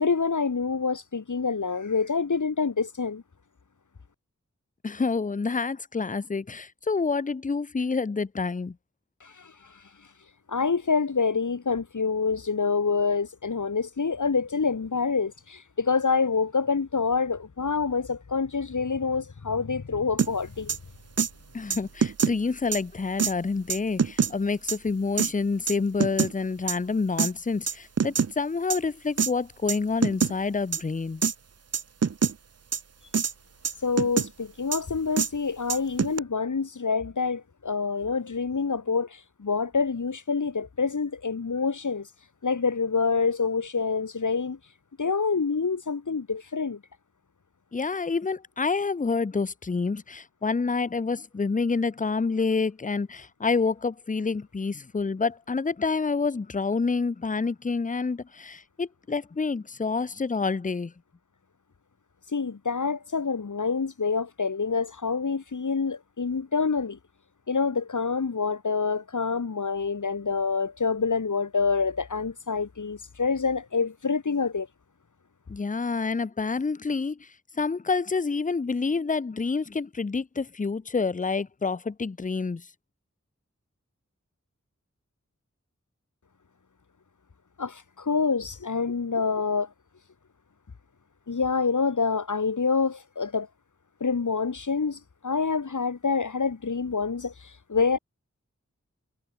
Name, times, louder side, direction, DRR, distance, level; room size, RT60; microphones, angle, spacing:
voice 1, 0.0-3.2 9.2-9.5 10.5-20.8 33.8-42.1 42.4-44.6 45.0-46.8 62.3-67.0 67.5-74.7 87.6-89.7 91.3-93.5 94.0-98.0, left 5 dB, 85° left, 1.2 m, -27 dB
voice 2, 4.8-8.8 21.5-31.2 47.7-60.9 75.5-77.3 77.6-82.7, left 4 dB, 25° left, 0.5 m, -28 dB
sound 1, 20.2-20.3 20.7-20.8 21.2-21.3 21.7-22.3 22.7-22.8 23.2-23.3 23.7-24.3 24.7-24.8 25.2-25.3 25.7-26.3 26.7-26.8 27.2-27.3 27.7-28.3 28.7-28.8 29.2-29.3 29.7-29.8 30.0-30.3 30.7-30.8 31.2-31.3 31.7-32.3 32.7-32.8 33.1-33.3 33.6-34.3 34.7-34.8 35.2-35.3 35.7-36.2, right 6 dB, 55° right, 0.6 m, -24 dB
wide cardioid pair, 40°, 30 cm